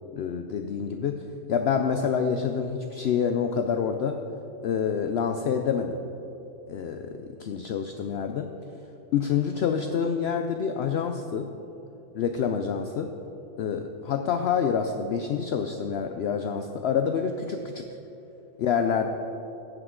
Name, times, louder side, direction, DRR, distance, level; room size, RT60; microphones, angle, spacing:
voice 1, 0.2-1.2 1.5-4.2 4.6-6.0 6.7-8.5 9.1-11.5 12.1-13.1 13.6-17.9 18.6-19.1, left 7 dB, 65° left, 6 dB, 0.7 m, -27 dB
15.5 x 7.8 x 3.7 m, 3.0 s
omnidirectional pair, 1.4 m